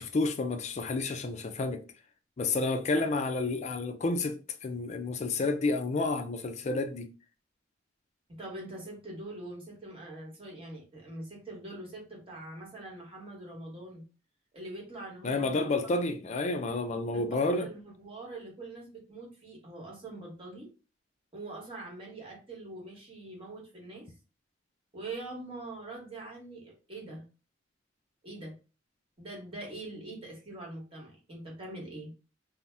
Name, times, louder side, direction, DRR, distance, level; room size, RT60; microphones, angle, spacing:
voice 1, 0.0-1.8 2.4-7.1 15.2-17.7, left 3 dB, 35° left, 0.4 m, -30 dB
voice 2, 8.3-14.0 14.5-15.7 16.0-16.1 17.1-20.7 21.3-24.1 24.9-27.2 28.2-28.5 29.2-32.1, right 2 dB, 30° right, 1.1 m, -43 dB
2.7 x 2.0 x 3.3 m
head